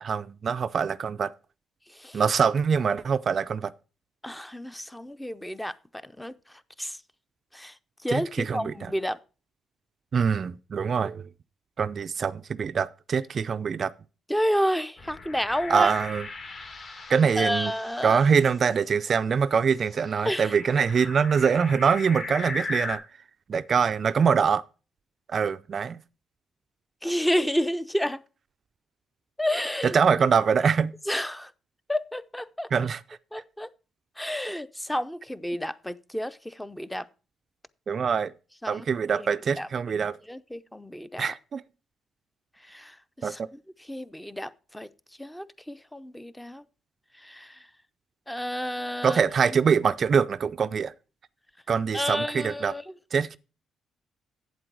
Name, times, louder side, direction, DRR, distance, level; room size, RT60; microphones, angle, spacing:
voice 1, 0.0-1.3 2.1-3.7 8.1-8.9 10.1-11.3 11.8-13.9 15.7-16.3 17.1-17.7 18.0-23.0 23.5-24.6 25.3-26.0 29.8-31.0 32.7-33.0 37.9-38.3 38.7-40.2 41.2-41.6 43.2-43.5 49.0-50.9 51.7-52.7 53.1-53.4, right 6 dB, 50° right, 0.4 m, -24 dB
voice 2, 4.2-5.7 6.0-6.3 6.8-7.0 7.5-7.7 8.0-9.2 14.3-15.9 17.4-18.2 20.2-20.5 27.0-28.2 29.4-30.0 31.1-31.5 31.9-32.7 33.3-33.7 34.2-37.1 38.6-38.8 39.6-39.7 40.3-41.3 42.7-43.4 43.9-44.9 45.2-46.6 47.2-47.6 48.3-49.2 51.9-52.8, equal, 5° left, 0.6 m, -30 dB
sound 1, 15.0-18.9 19.8-23.0, left 3 dB, 45° left, 2.4 m, -39 dB
8.3 x 7.8 x 4.6 m
cardioid pair, 90°, 0 cm